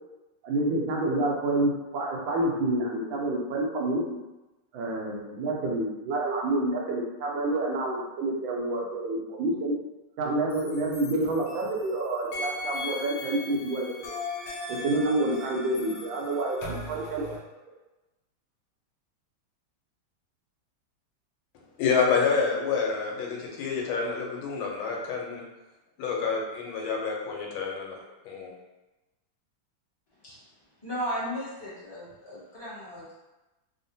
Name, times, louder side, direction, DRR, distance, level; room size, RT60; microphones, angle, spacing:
voice 1, 0.4-4.0 4.7-9.7 10.2-14.1 14.8-17.3, right 2 dB, 75° right, -2 dB, 1.4 m, -28 dB
sound 1, 10.5-11.9 12.3-17.4, left 2 dB, 70° left, 1.3 m, -38 dB
voice 2, 21.8-25.4 26.0-28.6, left 5 dB, 90° left, -1 dB, 1.5 m, -28 dB
voice 3, 30.8-33.1, equal, 15° left, -11 dB, 0.8 m, -35 dB
3.5 x 2.1 x 2.6 m, 1.1 s
omnidirectional pair, 2.2 m